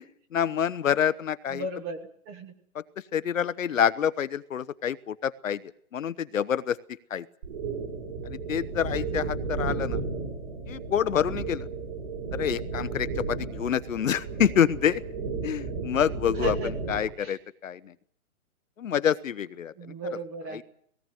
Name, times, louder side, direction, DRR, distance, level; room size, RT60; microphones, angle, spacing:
voice 1, 0.3-1.7 2.7-2.8 3.1-5.6 5.9-6.8 7.1-7.3 8.3-10.0 10.7-11.7 12.3-15.0 15.4-17.9 18.8-19.7 20.5-20.6, left 9 dB, 65° left, 14 dB, 1.0 m, -27 dB
voice 2, 1.5-2.0 2.3-2.5 16.2-16.7 17.2-17.4 19.8-20.6, right 2 dB, 15° right, 9 dB, 1.2 m, -35 dB
sound 1, 7.4-17.1, right 4 dB, 35° right, 5.8 m, -33 dB
19.0 x 17.5 x 9.2 m, 0.64 s
hypercardioid pair, 170°, 43 cm